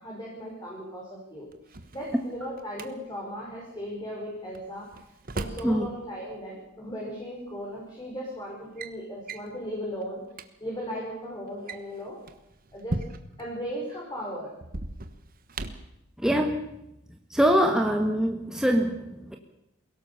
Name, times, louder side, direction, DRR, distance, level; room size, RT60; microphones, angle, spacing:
voice 1, 0.0-1.5 1.9-4.9 5.3-10.2 10.6-12.2 12.7-13.0 13.4-14.5, equal, 20° left, -4 dB, 5.5 m, -37 dB
Drawer open or close, 1.5-2.9 4.5-5.7 7.0-7.1 7.9-8.2 8.5-8.9 9.3-9.5 10.0-10.1 10.3-10.5 11.5-13.5 14.6-15.9, right 2 dB, 45° right, 1.3 m, -37 dB
voice 2, 16.2-16.6 17.3-19.4, equal, 5° right, 3 dB, 1.4 m, -24 dB
22.5 x 17.5 x 7.0 m, 0.86 s
head